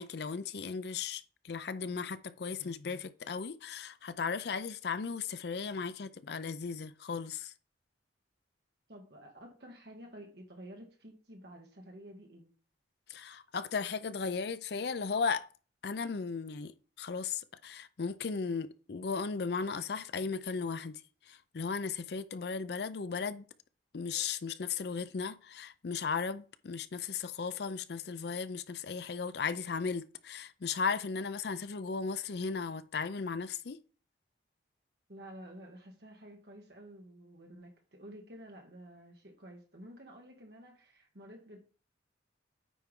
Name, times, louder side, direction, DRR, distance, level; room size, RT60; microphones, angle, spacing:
voice 1, 0.0-7.5 13.1-15.5 15.8-21.0 21.3-23.4 23.9-33.8, left 5 dB, 60° left, 0.5 m, -36 dB
voice 2, 8.9-12.5 35.1-41.6, right 1 dB, 60° right, 1.9 m, -51 dB
9.3 x 4.5 x 3.7 m
head